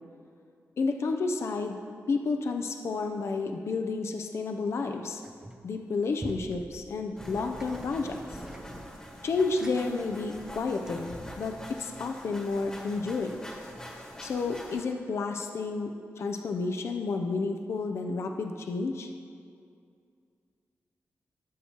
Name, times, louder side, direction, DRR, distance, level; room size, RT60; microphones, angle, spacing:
voice 1, 0.8-1.8 2.1-5.2 5.6-8.2 9.2-13.4 14.2-15.9 16.2-19.1, left 4 dB, 60° left, 5 dB, 0.5 m, -31 dB
sound 1, 5.2-5.7 6.2-11.3, right 1 dB, 15° right, 0.5 m, -47 dB
sound 2, 7.2-14.8, equal, 10° left, 1.2 m, -44 dB
14.0 x 7.0 x 2.9 m, 2.3 s
wide cardioid pair, 145°, 5 cm